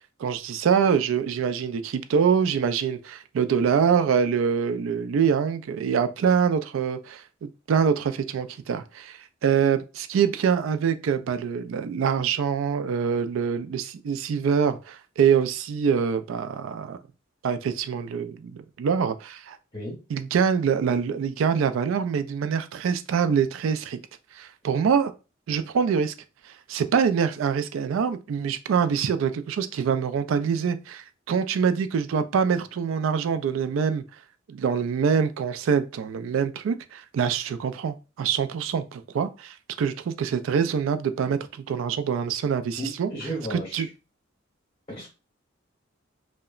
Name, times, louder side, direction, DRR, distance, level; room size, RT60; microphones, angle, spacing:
voice 1, 0.2-17.0 17.4-19.6 20.1-24.0 24.3-25.1 25.5-26.1 26.5-34.0 34.5-43.1 43.5-43.9, right 7 dB, 80° right, 0.3 m, -25 dB
voice 2, 42.8-43.8 44.9-45.1, right 1 dB, 30° left, 0.8 m, -33 dB
2.8 x 2.1 x 2.3 m
head